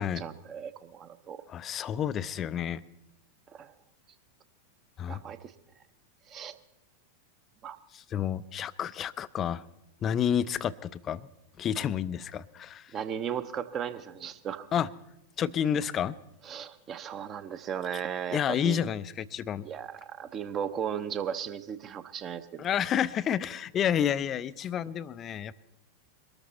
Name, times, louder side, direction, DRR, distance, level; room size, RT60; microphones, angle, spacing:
voice 1, 0.0-1.4 3.5-3.7 5.1-5.5 6.3-6.6 7.6-7.8 12.9-14.7 16.4-18.9 19.6-22.7, right 8 dB, 30° right, 11 dB, 0.8 m, -36 dB
voice 2, 1.5-2.8 5.0-5.2 7.9-9.6 10.0-11.3 11.6-12.9 14.7-14.9 15.4-16.1 18.3-19.7 22.6-25.5, left 9 dB, 30° left, 15 dB, 0.5 m, -30 dB
22.5 x 13.5 x 4.1 m, 0.86 s
figure-of-eight pair, 90°, 0 cm